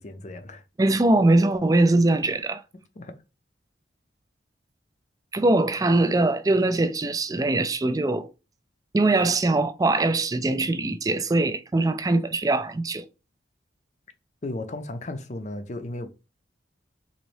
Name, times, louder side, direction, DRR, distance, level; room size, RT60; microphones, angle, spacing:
voice 1, 0.0-0.6 3.0-3.1 14.4-16.1, left 2 dB, 40° left, 0.5 m, -35 dB
voice 2, 0.8-2.6 5.3-8.3 8.9-13.0, right 2 dB, 20° right, 0.3 m, -22 dB
4.0 x 2.6 x 3.1 m
head